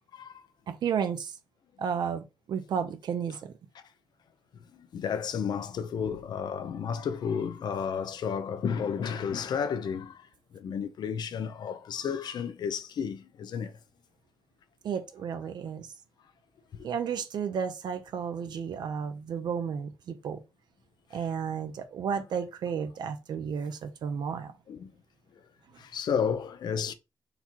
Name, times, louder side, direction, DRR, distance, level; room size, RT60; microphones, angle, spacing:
voice 1, 0.1-0.4 4.7-10.3 10.5-13.8 16.8-16.9 24.7-24.9 25.8-26.9, left 7 dB, 75° left, 0.6 m, -32 dB
voice 2, 0.7-1.4 1.8-3.5 14.8-15.9 16.8-20.4 21.1-24.5, right 7 dB, 75° right, 0.6 m, -32 dB
4.0 x 2.8 x 4.4 m
wide cardioid pair, 135°, 7 cm